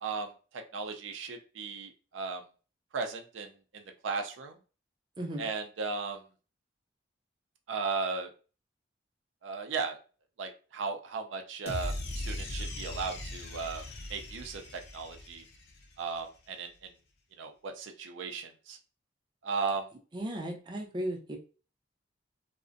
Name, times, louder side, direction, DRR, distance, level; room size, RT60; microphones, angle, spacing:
voice 1, 0.0-2.4 2.9-4.6 5.4-6.2 7.7-8.3 9.4-10.0 10.4-15.4 16.0-16.9 17.4-18.8 19.4-19.9, right 4 dB, 90° right, 5 dB, 0.4 m, -36 dB
sound 1, 11.7-16.0, left 1 dB, 55° left, 0.5 m, -39 dB
voice 2, 20.1-21.4, right 1 dB, 25° right, 1 dB, 0.4 m, -35 dB
2.5 x 2.0 x 2.4 m, 0.36 s
head